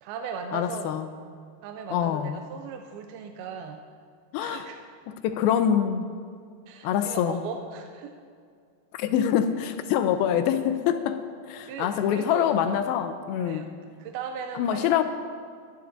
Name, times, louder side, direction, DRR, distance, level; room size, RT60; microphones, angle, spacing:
voice 1, 0.0-0.9 1.6-3.8 4.4-4.8 6.7-8.2 11.7-12.9 13.4-13.7 14.0-14.9, right 6 dB, 90° right, 4 dB, 2.5 m, -37 dB
voice 2, 0.5-1.1 1.9-2.4 4.3-4.7 5.1-6.1 6.8-7.4 9.0-11.2 11.5-13.7 14.6-15.0, left 9 dB, 80° left, 9 dB, 2.4 m, -25 dB
22.0 x 10.5 x 2.6 m, 2.2 s
omnidirectional pair, 4.4 m